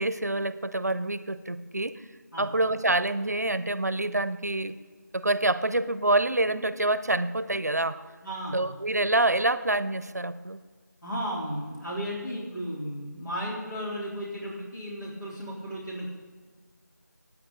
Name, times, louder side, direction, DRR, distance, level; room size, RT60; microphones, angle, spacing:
voice 1, 0.0-2.0 2.4-4.8 5.1-8.0 8.5-10.6, right 2 dB, 60° right, 14 dB, 0.6 m, -26 dB
voice 2, 8.2-8.7 11.0-16.1, equal, 85° left, -5 dB, 3.5 m, -34 dB
18.5 x 9.1 x 3.9 m, 1.5 s
figure-of-eight pair, 180°, 10 cm